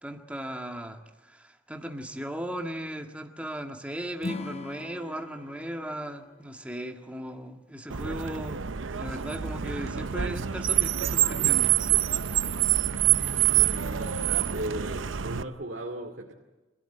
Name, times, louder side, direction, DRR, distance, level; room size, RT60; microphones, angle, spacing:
voice 1, 0.0-8.6 8.9-11.8, equal, 5° right, 4 dB, 1.8 m, -37 dB
Acoustic guitar / Strum, 4.2-7.5, left 3 dB, 35° left, 1.1 m, -41 dB
Car, 7.9-15.4, right 11 dB, 75° right, 0.7 m, -26 dB
voice 2, 13.5-14.2 14.5-16.3, right 1 dB, 60° right, 0 dB, 2.4 m, -37 dB
26.5 x 16.5 x 9.1 m, 1.2 s
head